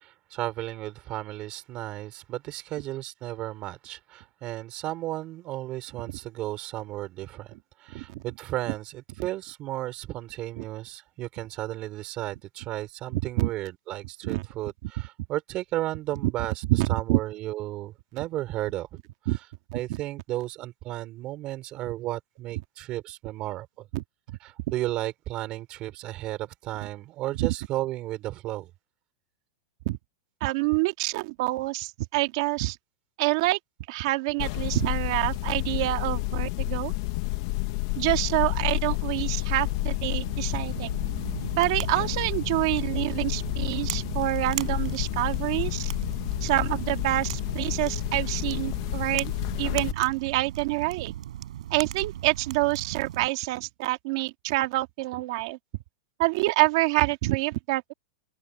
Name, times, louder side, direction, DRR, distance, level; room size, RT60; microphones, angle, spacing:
voice 1, 0.0-18.9 19.7-23.9 24.4-28.7, right 16 dB, 25° right, 4.3 m, -34 dB
voice 2, 13.1-13.5 14.2-14.4 16.2-16.3 16.7-17.2 19.3-19.4 19.7-20.0 23.9-24.4 27.4-27.5 29.9-30.0 30.4-32.8 33.2-33.6 33.9-36.9 38.0-40.9 41.6-45.9 46.4-49.3 49.6-51.1 51.7-55.6 56.2-57.9, right 20 dB, 40° right, 2.0 m, -27 dB
sound 1, 34.4-49.9, left 20 dB, 35° left, 0.9 m, -30 dB
sound 2, 39.5-53.3, right 12 dB, 70° right, 7.9 m, -38 dB
open air
supercardioid pair, 180°, 4 cm